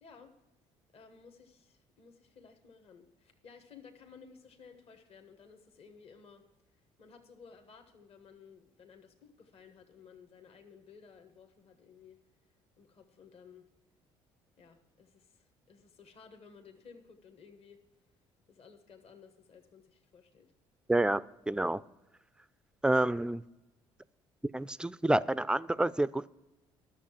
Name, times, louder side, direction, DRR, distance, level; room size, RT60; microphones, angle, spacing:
voice 1, 0.0-0.3 0.9-6.4 7.0-12.2 12.8-13.7 14.6-17.8 18.5-20.5, left 6 dB, 55° left, 5 dB, 1.3 m, -56 dB
voice 2, 20.9-21.8 22.8-23.4 24.5-26.3, right 1 dB, 5° right, 18 dB, 0.3 m, -28 dB
11.5 x 6.7 x 7.3 m, 1.1 s
supercardioid pair, 70°, 12 cm